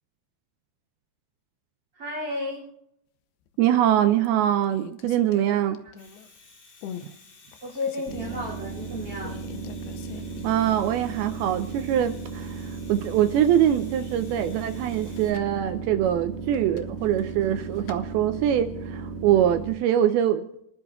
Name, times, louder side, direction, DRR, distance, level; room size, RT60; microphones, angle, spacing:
voice 1, 1.9-2.6 7.6-9.3, left 2 dB, 30° right, -3 dB, 2.8 m, -32 dB
sound 1, 3.5-3.8 4.2-6.4 6.8-7.1 7.5-8.5 9.2-11.0 11.3-11.4 14.9-15.6 16.5-18.0, left 9 dB, 75° left, 2.6 m, -43 dB
voice 2, 3.6-5.8 10.4-20.5, right 10 dB, 85° right, 8 dB, 2.2 m, -23 dB
Domestic sounds home sounds, 5.8-15.3, left 3 dB, 50° left, 5.9 m, -53 dB
sound 2, 8.1-19.7, right 4 dB, 60° right, 3.4 m, -36 dB
29.5 x 11.5 x 2.3 m, 0.77 s
omnidirectional pair, 5.0 m